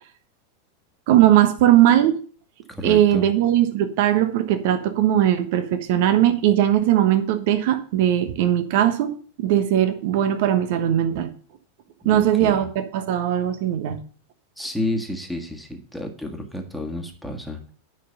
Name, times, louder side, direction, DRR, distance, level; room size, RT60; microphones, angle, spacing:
voice 1, 1.1-2.2 2.8-11.3 12.0-14.0, right 11 dB, 50° right, 9 dB, 1.2 m, -19 dB
voice 2, 2.7-3.2 12.0-12.6 14.6-17.7, left 1 dB, ahead, 3 dB, 1.8 m, -31 dB
9.9 x 5.7 x 6.7 m, 0.42 s
figure-of-eight pair, 90°, 0 cm